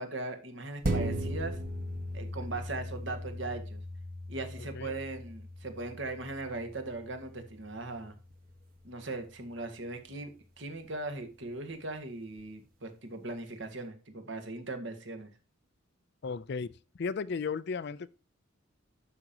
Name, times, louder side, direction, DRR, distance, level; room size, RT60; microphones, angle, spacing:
voice 1, 0.0-1.6 2.1-3.8 4.3-8.2 8.8-10.3 10.6-15.3, right 2 dB, 60° right, 1.6 m, -39 dB
sound 1, 0.8-9.7 10.1-10.2, equal, 45° right, 1.4 m, -38 dB
voice 2, 16.2-18.1, left 5 dB, 55° left, 0.4 m, -35 dB
12.0 x 5.2 x 2.8 m
head